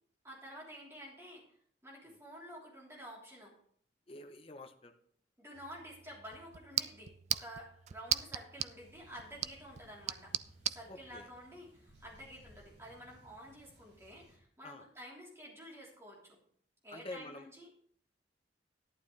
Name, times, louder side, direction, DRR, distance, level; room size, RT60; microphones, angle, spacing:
voice 1, 0.2-1.4 1.8-3.5 5.4-10.3 10.7-16.4 16.8-17.7, equal, 15° right, -4 dB, 3.4 m, -50 dB
voice 2, 4.1-5.0 10.9-11.3 14.6-14.9 16.9-17.5, left 2 dB, 30° left, 5 dB, 0.8 m, -48 dB
sound 1, 5.5-10.8, right 11 dB, 40° right, 0.3 m, -39 dB
sound 2, 8.8-14.4, equal, 80° right, 5.0 m, -62 dB
11.5 x 11.5 x 3.3 m, 0.63 s
head